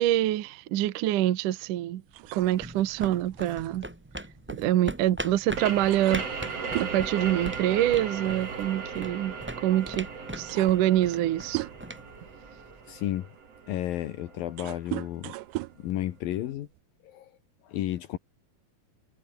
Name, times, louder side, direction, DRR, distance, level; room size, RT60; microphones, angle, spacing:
voice 1, 0.0-2.0 2.3-3.9 4.5-6.3 6.8-10.1 10.3-11.7, right 13 dB, 65° right, 2.5 m, -25 dB
sound 1, 2.1-5.2 5.5-5.6 5.9-8.1 8.4-8.6 9.6-9.7 10.2-12.1 12.7-16.8, right 19 dB, 90° right, 1.9 m, -39 dB
sound 2, 2.2-13.0, right 1 dB, 5° right, 1.4 m, -41 dB
sound 3, 5.5-14.9, right 5 dB, 40° right, 4.6 m, -37 dB
voice 2, 12.9-13.3 13.7-15.3 15.8-16.7 17.0-17.3 17.6-18.2, left 13 dB, 75° left, 2.9 m, -32 dB
omnidirectional pair, 4.4 m